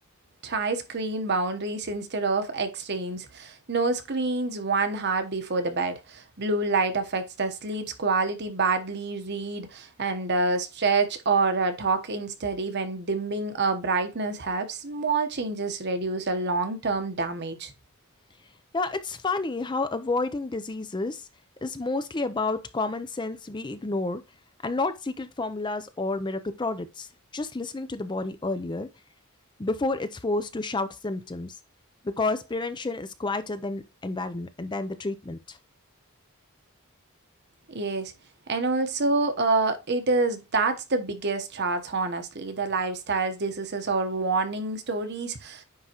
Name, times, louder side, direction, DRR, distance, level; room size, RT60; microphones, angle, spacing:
voice 1, 0.4-17.7 37.7-38.1 38.5-45.6, right 3 dB, 50° right, 1.0 m, -27 dB
voice 2, 18.7-21.3 21.6-24.2 24.6-27.1 27.3-28.9 29.6-31.6 32.0-35.6, left 3 dB, 20° left, 0.5 m, -30 dB
9.6 x 3.7 x 3.0 m
head